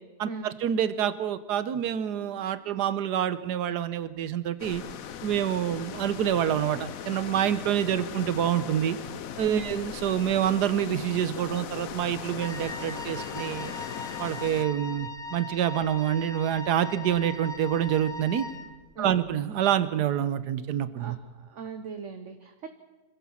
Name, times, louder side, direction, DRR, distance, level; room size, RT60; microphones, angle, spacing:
voice 1, 0.2-4.8 5.2-9.0 9.4-13.7 14.2-18.5 19.0-21.2, right 10 dB, 80° right, 14 dB, 1.5 m, -27 dB
sound 1, 4.6-14.7, left 9 dB, 60° left, 1.2 m, -39 dB
Wind instrument woodwind instrument, 12.4-18.8, left 3 dB, ahead, 1.1 m, -40 dB
voice 2, 20.9-22.7, right 4 dB, 50° right, 8 dB, 1.3 m, -39 dB
25.0 x 15.5 x 7.2 m, 1.2 s
omnidirectional pair, 1.7 m